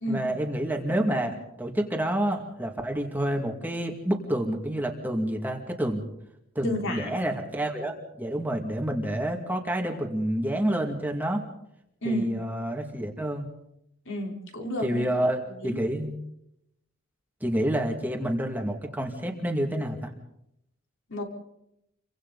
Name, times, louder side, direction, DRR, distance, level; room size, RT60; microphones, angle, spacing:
voice 1, 0.1-6.1 6.5-11.4 12.0-13.5 14.8-16.2 17.4-20.1, right 1 dB, 10° right, 1 dB, 2.3 m, -28 dB
voice 2, 6.6-7.4 12.0-12.3 14.1-15.1 15.6-15.8 21.1-21.2, left 1 dB, 60° left, 1 dB, 4.2 m, -31 dB
29.5 x 24.5 x 4.1 m, 0.81 s
head